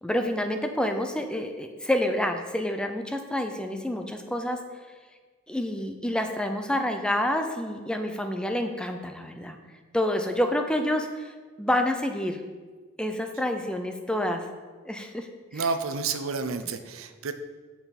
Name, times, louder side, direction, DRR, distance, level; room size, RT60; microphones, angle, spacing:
voice 1, 0.0-4.6 5.5-9.6 9.9-11.3 11.6-12.4 13.0-14.5 14.9-15.6, left 1 dB, 5° left, 5 dB, 0.5 m, -28 dB
voice 2, 15.5-17.3, right 4 dB, 90° right, 8 dB, 0.6 m, -30 dB
9.1 x 5.8 x 4.2 m, 1.4 s
head